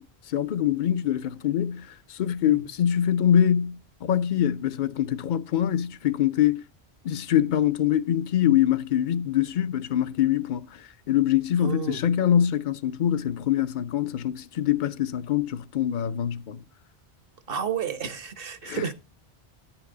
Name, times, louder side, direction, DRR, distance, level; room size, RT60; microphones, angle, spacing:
voice 1, 0.0-6.6 7.0-16.6 18.6-18.9, left 10 dB, 55° left, 0.7 m, -24 dB
voice 2, 11.6-12.1 17.5-18.9, right 7 dB, 60° right, 1.2 m, -31 dB
10.5 x 8.8 x 3.8 m
omnidirectional pair, 1.1 m